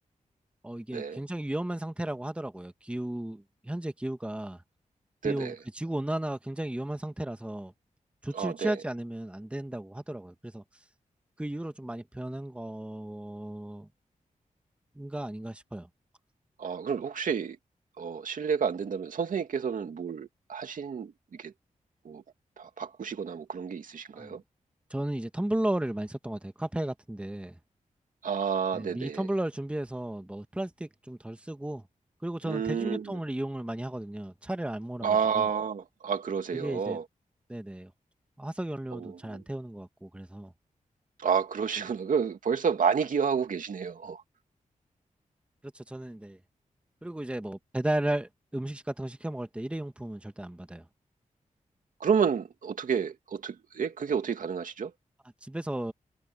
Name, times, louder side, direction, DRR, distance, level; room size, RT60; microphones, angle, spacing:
voice 1, 0.6-4.6 5.2-7.7 8.2-10.6 11.4-13.9 14.9-15.9 24.1-24.4 24.9-27.6 28.7-31.8 32.2-35.5 36.5-37.0 37.5-37.9 38.4-40.5 45.7-46.4 47.0-50.8 55.4-55.9, right 1 dB, 10° right, 1.3 m, -34 dB
voice 2, 5.2-5.6 8.3-8.7 16.6-17.6 18.0-21.5 22.0-22.2 22.6-24.4 28.2-29.3 32.4-33.2 35.0-37.0 38.9-39.4 41.2-44.2 52.0-54.9, right 6 dB, 75° right, 2.4 m, -30 dB
wide cardioid pair, 100°, 14 cm